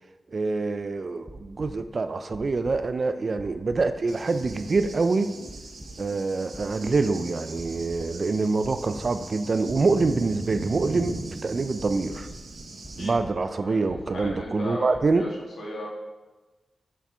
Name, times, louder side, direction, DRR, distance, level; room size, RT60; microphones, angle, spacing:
voice 1, 0.3-5.3 6.0-11.2 11.4-12.3 13.0-15.2, right 3 dB, 45° right, 10 dB, 0.3 m, -25 dB
sound 1, 1.2-1.9 2.3-3.1 3.3-5.1 5.4-6.2 6.5-7.3 7.6-8.2 8.6-9.3 9.6-10.4 10.7-11.4 11.8-12.5 12.8-13.6 13.9-14.7 14.9-15.2, right 1 dB, 10° right, 0.7 m, -45 dB
Cricket / Thunder, 4.1-13.1, right 3 dB, 75° right, 0.9 m, -39 dB
voice 2, 13.5-15.9, left 1 dB, 90° left, -3 dB, 1.5 m, -36 dB
7.2 x 4.2 x 3.4 m, 1.2 s
wide cardioid pair, 140°, 0 cm